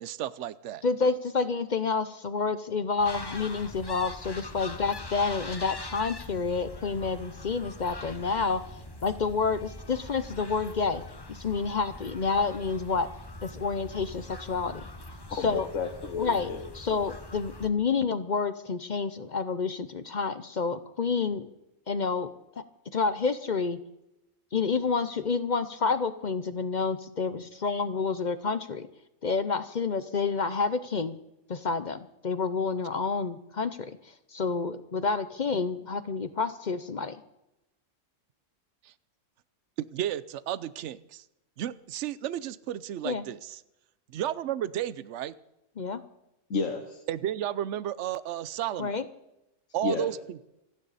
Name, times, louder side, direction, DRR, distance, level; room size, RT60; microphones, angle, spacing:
voice 1, 0.0-0.8 38.8-38.9 39.8-41.2 41.6-43.4 44.1-45.3 47.1-48.9 49.7-50.5, right 11 dB, 70° right, 17 dB, 0.9 m, -33 dB
voice 2, 0.8-13.1 13.4-14.9 15.3-15.7 16.2-21.5 21.9-22.3 22.6-22.7 22.9-23.8 24.5-28.9 29.2-31.2 31.5-37.2 43.0-43.3 45.8-46.0 48.8-49.0, left 4 dB, 45° left, 12 dB, 0.7 m, -29 dB
sound 1, 3.0-17.7, left 2 dB, 20° left, 1.0 m, -43 dB
voice 3, 15.3-16.6 46.5-47.0 49.8-50.1, left 4 dB, 85° left, 3 dB, 1.6 m, -31 dB
27.5 x 9.9 x 4.1 m, 0.89 s
omnidirectional pair, 1.3 m